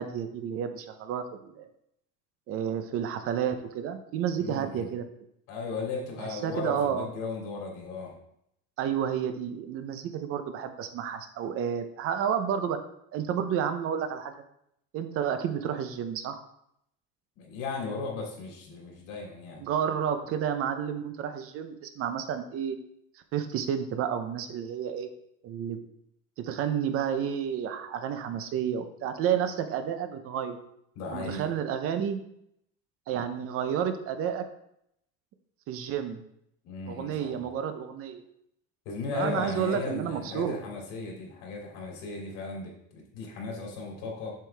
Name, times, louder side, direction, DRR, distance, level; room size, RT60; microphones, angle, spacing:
voice 1, 0.0-1.7 2.5-5.0 6.2-7.1 8.8-12.8 13.1-14.3 14.9-16.4 19.6-22.8 23.3-25.1 25.4-25.8 26.4-30.6 31.1-32.2 33.1-34.4 35.7-36.2 36.9-38.2 39.1-40.6, right 8 dB, 45° right, 8 dB, 0.8 m, -30 dB
voice 2, 4.4-4.9 5.5-8.1 17.4-19.6 31.0-31.5 36.6-37.4 38.8-44.3, left 3 dB, 90° left, -1 dB, 3.0 m, -36 dB
7.6 x 6.8 x 3.4 m, 0.74 s
cardioid pair, 175°, 31 cm